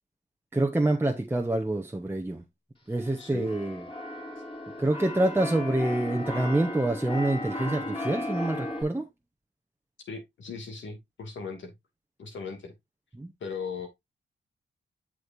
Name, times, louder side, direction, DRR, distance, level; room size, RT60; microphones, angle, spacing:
voice 1, 0.5-2.4 2.9-3.8 4.8-9.1 13.2-13.3, right 1 dB, 10° right, 1.0 m, -26 dB
Keyboard (musical), 2.9-8.8, left 1 dB, 25° left, 3.0 m, -35 dB
voice 2, 3.2-3.5 10.1-11.7 12.2-12.7 13.4-13.9, left 5 dB, 80° left, 2.4 m, -37 dB
7.9 x 6.5 x 2.6 m
cardioid pair, 70°, 19 cm